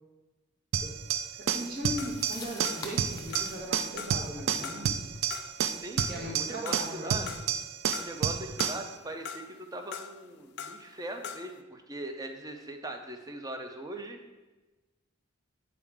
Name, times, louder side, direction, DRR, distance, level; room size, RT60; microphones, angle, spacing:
sound 1, 0.7-8.9, right 8 dB, 80° right, 0.4 m, -31 dB
sound 2, 0.9-5.8, left 3 dB, 20° left, 0.7 m, -48 dB
voice 1, 1.4-5.0 6.1-7.4, equal, 45° right, -2 dB, 1.4 m, -38 dB
sound 3, 2.0-3.1 3.3-4.3 4.6-7.6 7.9-8.9 9.2-10.9 11.2-11.6, left 7 dB, 55° left, 0.3 m, -42 dB
voice 2, 5.8-7.3 8.0-14.2, right 1 dB, 20° right, 5 dB, 0.5 m, -40 dB
8.7 x 4.7 x 3.5 m, 1.2 s
head